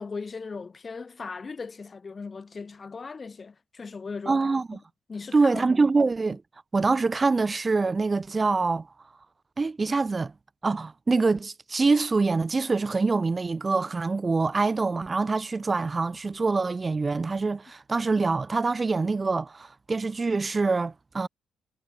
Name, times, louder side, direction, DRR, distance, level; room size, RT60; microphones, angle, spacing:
voice 1, 0.0-4.5 5.1-5.8 6.3-6.4, left 4 dB, 35° left, 1.8 m, -38 dB
voice 2, 4.3-4.8 5.3-6.4 6.7-8.9 9.6-10.3 10.6-21.3, right 3 dB, 25° right, 0.4 m, -25 dB
cardioid pair, 90°, 0 cm